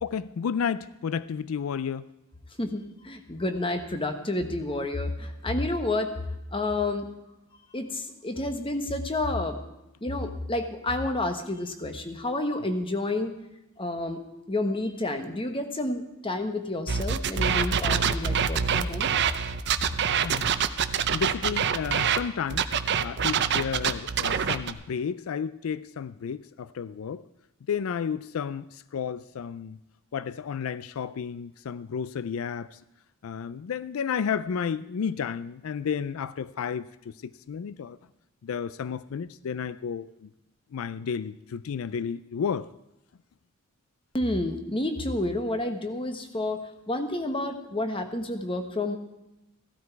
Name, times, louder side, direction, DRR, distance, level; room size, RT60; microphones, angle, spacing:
voice 1, 0.0-2.1 20.2-20.5 21.1-22.7 23.0-27.2 27.7-29.8 30.1-32.8 33.2-38.0 38.4-40.3 40.7-42.7, left 7 dB, 85° left, 0.4 m, -32 dB
voice 2, 2.6-6.1 6.5-7.1 7.7-9.6 10.0-13.3 13.8-14.2 14.5-19.1 44.1-49.0, left 2 dB, 25° left, 1.3 m, -30 dB
sound 1, 16.9-22.2 22.5-24.7, right 7 dB, 55° right, 0.6 m, -25 dB
15.5 x 12.5 x 4.7 m
head